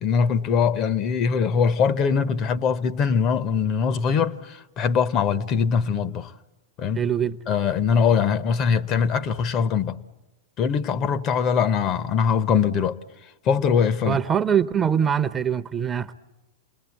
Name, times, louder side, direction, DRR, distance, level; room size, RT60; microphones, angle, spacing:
voice 1, 0.0-6.3 6.8-7.1 7.5-10.0 10.6-13.0 13.4-14.2, left 6 dB, 40° left, 0.9 m, -22 dB
voice 2, 6.9-7.4 14.0-16.1, right 8 dB, 20° right, 0.8 m, -23 dB
28.0 x 20.5 x 8.4 m
hypercardioid pair, 95°, 0 cm